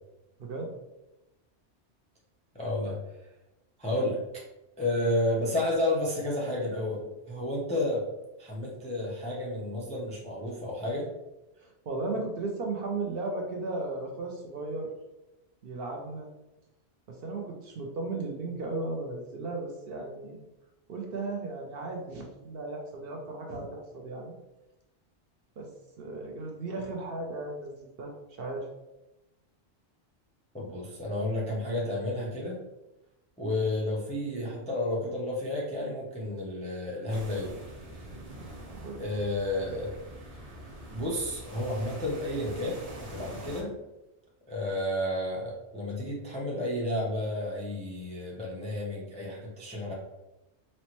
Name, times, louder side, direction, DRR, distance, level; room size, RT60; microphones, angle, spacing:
voice 1, 0.4-0.7 11.6-14.9 15.6-16.3 17.1-20.4 20.9-24.3 25.6-25.7 26.0-28.7 38.7-39.0, right 3 dB, 60° right, 0 dB, 0.7 m, -35 dB
voice 2, 2.5-3.0 3.8-4.2 4.8-8.1 8.4-11.1 30.5-32.6 33.4-37.6 39.0-39.9 40.9-43.7 44.5-49.9, left 1 dB, 10° left, -4 dB, 0.4 m, -31 dB
sound 1, 37.1-43.6, right 1 dB, 35° right, 0.9 m, -44 dB
4.3 x 2.0 x 2.9 m, 0.96 s
omnidirectional pair, 1.2 m